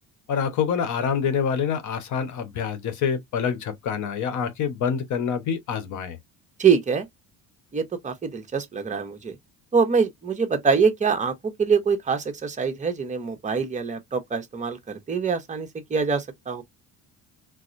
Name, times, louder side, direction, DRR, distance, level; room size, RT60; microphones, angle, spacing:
voice 1, 0.3-6.2, left 7 dB, 55° left, 1.1 m, -26 dB
voice 2, 6.6-7.1 7.7-9.3 9.7-16.6, right 6 dB, 20° right, 1.0 m, -24 dB
4.5 x 2.1 x 2.6 m
cardioid pair, 135°, 35 cm